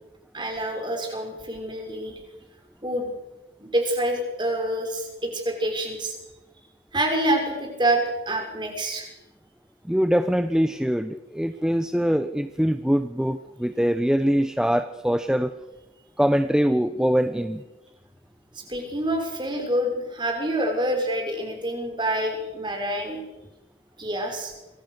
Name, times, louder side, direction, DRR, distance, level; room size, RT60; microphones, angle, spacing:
voice 1, 0.3-2.2 2.8-3.1 3.6-6.1 6.9-9.1 18.5-23.2 24.0-24.5, right 1 dB, 25° right, 3 dB, 6.1 m, -27 dB
voice 2, 9.8-15.5 16.2-17.6, equal, 5° right, 10 dB, 0.8 m, -23 dB
26.5 x 24.5 x 6.7 m, 1.0 s
head